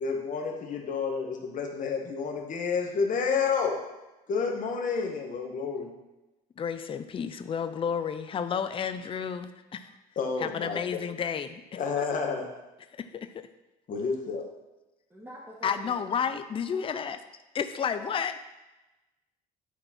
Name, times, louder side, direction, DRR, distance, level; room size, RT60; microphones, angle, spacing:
voice 1, 0.0-3.8 4.3-5.9 10.2-11.0 11.7-12.5 13.9-14.4, left 5 dB, 50° left, 1 dB, 1.5 m, -30 dB
voice 2, 6.6-9.9 10.4-12.0 13.0-13.3 15.6-17.2 17.5-18.4, left 7 dB, 30° left, 10 dB, 0.5 m, -31 dB
voice 3, 15.1-16.1 16.7-17.0 18.0-18.1, equal, 10° right, -7 dB, 2.0 m, -45 dB
11.0 x 4.4 x 4.4 m, 1.0 s
cardioid pair, 110°, 17 cm